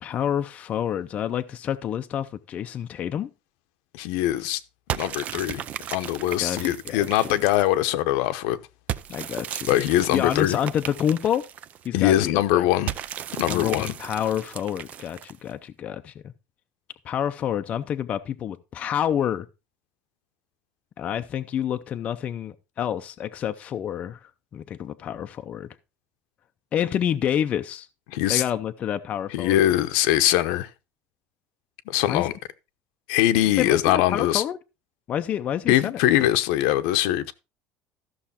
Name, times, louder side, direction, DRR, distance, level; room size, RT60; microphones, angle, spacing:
voice 1, 0.0-3.3 6.4-7.3 9.1-9.8 10.1-11.4 11.8-12.7 13.5-16.1 17.0-19.5 21.0-25.7 26.7-27.9 28.3-29.6 32.1-32.2 33.6-34.6 35.1-36.0, left 9 dB, 30° left, 0.5 m, -28 dB
voice 2, 3.9-4.6 4.9-5.6 5.9-8.6 9.7-10.6 11.9-12.9 13.4-13.9 28.1-28.4 29.3-30.7 31.9-32.3 33.1-34.4 35.7-37.3, left 14 dB, 75° left, 0.9 m, -22 dB
sound 1, 4.9-7.8 8.9-11.9 12.9-15.5, right 10 dB, 30° right, 0.4 m, -35 dB
13.5 x 6.3 x 4.2 m
cardioid pair, 175°, 5 cm